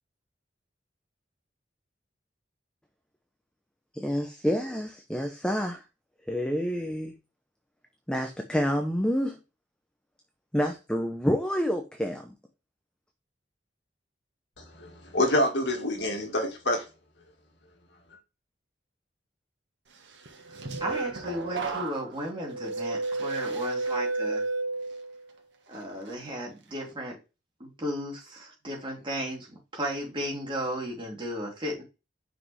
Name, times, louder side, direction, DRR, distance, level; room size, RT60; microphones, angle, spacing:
voice 1, 3.9-5.8 6.3-7.2 8.1-9.4 10.5-12.2, equal, 5° left, 0.7 m, -28 dB
voice 2, 14.6-16.8, left 1 dB, 75° left, 1.9 m, -27 dB
sound 1, 20.2-25.3 25.7-26.1, right 3 dB, 85° right, 1.4 m, -32 dB
voice 3, 20.5-24.4 25.7-27.1 27.6-31.8, equal, 30° right, 3.0 m, -35 dB
6.0 x 5.0 x 3.2 m
head